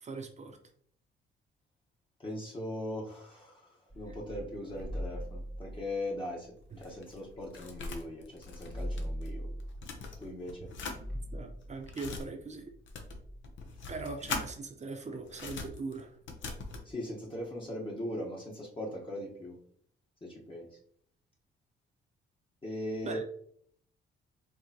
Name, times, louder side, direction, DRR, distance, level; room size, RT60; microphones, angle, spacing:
voice 1, 0.0-0.6 6.7-6.8 11.3-12.7 13.9-16.1 23.0-23.2, right 3 dB, 35° right, 5 dB, 0.8 m, -40 dB
voice 2, 2.2-3.7 3.9-9.5 10.2-10.7 16.8-19.6 20.2-20.7 22.6-23.2, left 1 dB, 25° left, -3 dB, 1.2 m, -39 dB
sound 1, 3.9-7.8 8.1-8.2 8.4-13.5, equal, 5° left, 0.9 m, -42 dB
sound 2, 6.6-9.3 9.6-11.0 11.6-12.2 12.9-14.5 15.3-16.9, left 4 dB, 70° left, 0.8 m, -41 dB
4.8 x 3.0 x 2.8 m, 0.62 s
cardioid pair, 90°, 20 cm